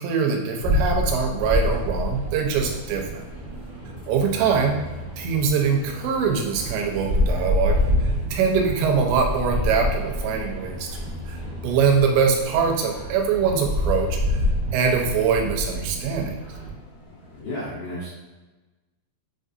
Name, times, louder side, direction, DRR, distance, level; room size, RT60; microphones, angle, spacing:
voice 1, 0.0-3.2 4.1-4.8 5.2-7.8 8.3-14.4 14.7-16.3, right 6 dB, 90° right, 2 dB, 2.8 m, -23 dB
sound 1, 0.6-17.4, left 1 dB, 65° left, 1.4 m, -28 dB
sound 2, 1.3-16.7, right 4 dB, 55° right, 1.9 m, -36 dB
voice 2, 17.0-18.1, left 1 dB, 90° left, -7 dB, 1.7 m, -34 dB
7.6 x 2.7 x 2.5 m, 1.2 s
omnidirectional pair, 5.0 m